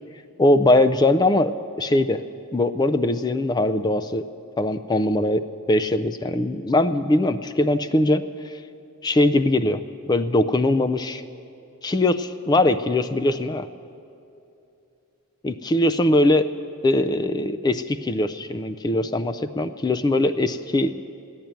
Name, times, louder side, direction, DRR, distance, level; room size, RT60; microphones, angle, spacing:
voice 1, 0.4-2.2 2.5-4.2 4.6-8.2 9.0-9.8 10.1-11.2 11.8-13.7 15.4-16.5 16.8-20.9, left 1 dB, 20° left, 10 dB, 0.3 m, -21 dB
15.0 x 10.0 x 9.2 m, 2.7 s
head